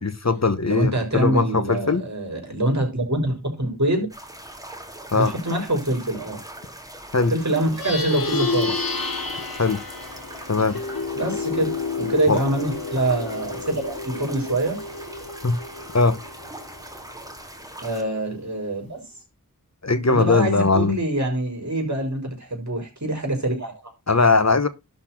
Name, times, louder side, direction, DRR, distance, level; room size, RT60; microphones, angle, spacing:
voice 1, 0.0-2.0 5.1-5.3 7.1-7.3 9.6-9.8 10.5-10.8 12.3-12.4 15.4-15.6 15.9-16.2 19.8-20.9 24.1-24.7, left 3 dB, 50° left, 1.1 m, -20 dB
voice 2, 0.6-4.1 5.1-6.4 7.3-8.8 11.2-14.8 17.8-19.0 20.1-23.9, right 1 dB, 55° right, 5.2 m, -25 dB
sound 1, 4.1-18.0, right 1 dB, 10° right, 2.4 m, -41 dB
Plucked string instrument, 7.6-17.3, left 4 dB, 75° left, 3.0 m, -30 dB
12.0 x 4.4 x 5.9 m
wide cardioid pair, 55°, 35 cm